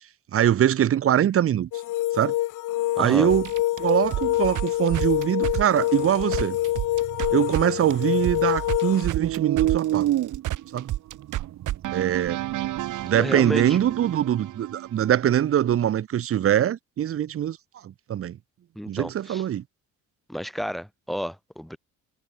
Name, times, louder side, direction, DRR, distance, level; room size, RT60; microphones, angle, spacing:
voice 1, 0.3-1.7 2.1-2.3 3.0-3.5 3.8-6.6 7.3-10.1 10.7-10.9 11.9-12.4 13.0-17.6 17.8-18.4 18.9-19.6, right 10 dB, 45° right, 1.6 m, -23 dB
sound 1, 1.7-9.1, left 15 dB, 80° left, 1.9 m, -26 dB
voice 2, 3.0-3.3 13.2-13.8 18.7-19.4 20.3-21.8, equal, ahead, 5.1 m, -31 dB
sound 2, 3.3-7.6 7.9-15.1, right 14 dB, 80° right, 4.3 m, -31 dB
sound 3, 6.1-8.5 8.9-14.1, right 13 dB, 60° right, 1.4 m, -30 dB
cardioid pair, 160°, 31 cm